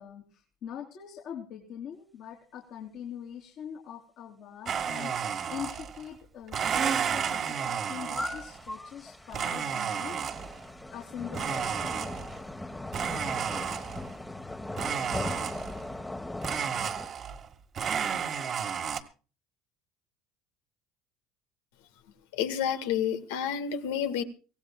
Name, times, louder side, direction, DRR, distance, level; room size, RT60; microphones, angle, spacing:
voice 1, 0.0-10.5 10.9-12.1, left 9 dB, 60° left, 3.3 m, -43 dB
Domestic sounds home sounds, 4.7-6.1 6.5-8.6 9.3-10.6 11.3-12.5 12.9-14.1 14.7-15.9 16.4-17.5 17.7-19.0, right 7 dB, 50° right, 1.8 m, -32 dB
sound 1, 7.6-17.1, left 2 dB, 10° left, 1.4 m, -39 dB
voice 2, 22.3-24.2, left 8 dB, 85° left, 1.7 m, -29 dB
25.0 x 17.0 x 2.3 m
supercardioid pair, 80°, 0 cm